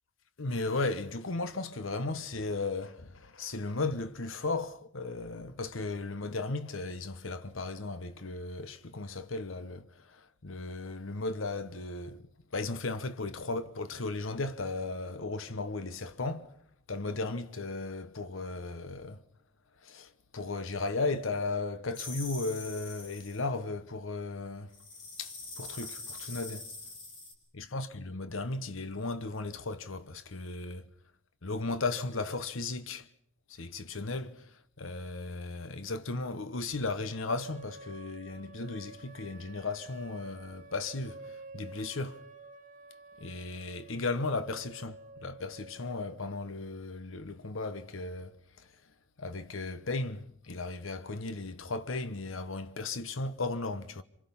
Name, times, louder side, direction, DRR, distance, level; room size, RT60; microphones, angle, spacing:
voice 1, 0.4-12.2 12.5-16.6 16.9-19.2 19.8-24.7 25.2-26.7 27.5-30.9 31.4-33.1 33.5-42.2 43.2-48.7 49.2-54.0, left 3 dB, 85° left, 1.0 m, -36 dB
sound 1, 21.9-23.4 24.7-27.3, left 3 dB, 70° left, 5.6 m, -44 dB
sound 2, 37.3-46.3, right 2 dB, 40° right, 1.1 m, -50 dB
27.0 x 25.5 x 5.5 m
head